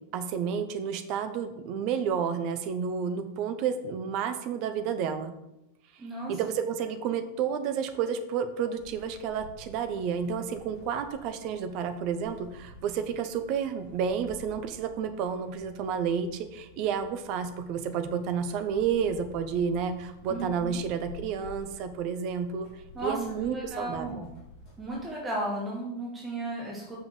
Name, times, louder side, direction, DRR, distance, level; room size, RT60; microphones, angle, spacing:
voice 1, 0.1-5.3 6.3-22.7 23.0-24.1, right 7 dB, 40° right, 9 dB, 1.0 m, -30 dB
voice 2, 6.0-6.4 20.3-20.8 22.9-24.3 24.8-27.0, right 1 dB, 15° right, -3 dB, 1.7 m, -35 dB
sound 1, 8.8-25.1, left 2 dB, 35° left, 2.9 m, -51 dB
6.6 x 5.7 x 6.7 m, 0.88 s
figure-of-eight pair, 90°, 0 cm